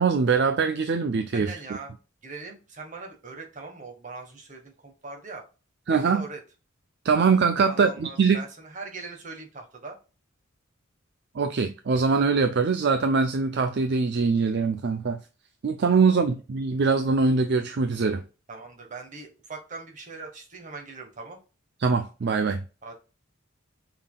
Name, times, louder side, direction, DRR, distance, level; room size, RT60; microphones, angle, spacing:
voice 1, 0.0-1.5 5.9-6.2 7.0-8.4 11.3-15.2 15.6-18.2 21.8-22.6, right 5 dB, 55° right, 0.4 m, -23 dB
voice 2, 1.3-1.9 2.2-5.4 5.9-6.4 7.6-10.0 15.9-16.2 18.5-21.4 22.8-23.0, right 4 dB, 40° right, 1.2 m, -41 dB
5.5 x 3.7 x 2.3 m
head